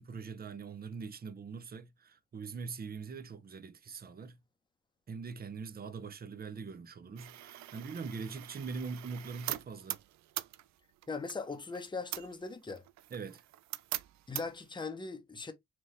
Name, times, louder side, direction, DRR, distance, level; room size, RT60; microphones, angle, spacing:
voice 1, 0.0-4.4 5.1-10.0 13.1-13.4, right 5 dB, 30° right, 0.8 m, -42 dB
sound 1, 7.2-14.7, right 14 dB, 65° right, 0.5 m, -43 dB
voice 2, 11.1-12.8 14.3-15.5, left 4 dB, 15° left, 0.9 m, -40 dB
4.4 x 2.6 x 3.2 m
cardioid pair, 90°, 30 cm